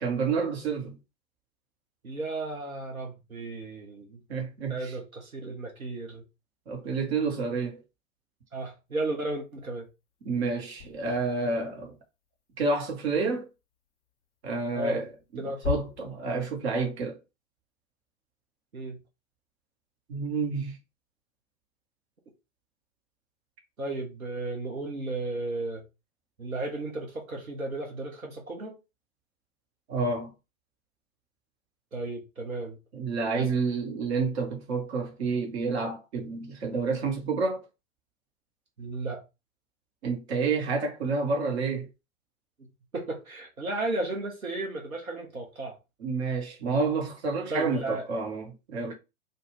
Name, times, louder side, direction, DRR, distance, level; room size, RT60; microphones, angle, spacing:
voice 1, 0.0-1.0 4.3-4.9 6.7-7.8 10.2-11.9 12.6-13.5 14.4-15.0 15.3-17.2 20.1-20.8 29.9-30.3 32.9-37.6 40.0-41.9 46.0-48.9, right 4 dB, 50° right, 1.1 m, -29 dB
voice 2, 2.0-4.2 4.7-6.2 8.5-9.9 14.7-15.1 15.4-15.7 18.7-19.0 23.8-25.8 26.4-28.8 31.9-32.8 33.3-33.5 38.8-39.2 42.9-45.8 47.5-48.0, right 2 dB, 85° right, 0.9 m, -34 dB
sound 1, 10.7-12.0 13.3-13.4 14.4-16.3, left 11 dB, 35° left, 0.9 m, -38 dB
2.4 x 2.4 x 3.1 m
figure-of-eight pair, 105°, 41 cm